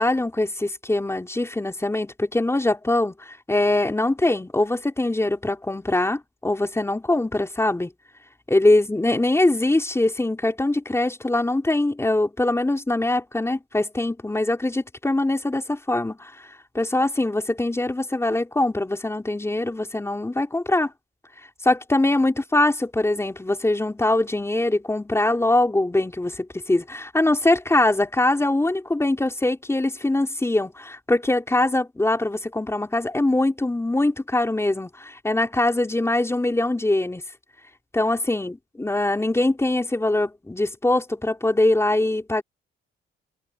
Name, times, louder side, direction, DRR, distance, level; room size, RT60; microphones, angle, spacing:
voice 1, 0.0-7.9 8.5-16.5 16.7-20.9 21.6-37.2 37.9-42.4, left 2 dB, 15° left, 4.3 m, -22 dB
cardioid pair, 90°, 20 cm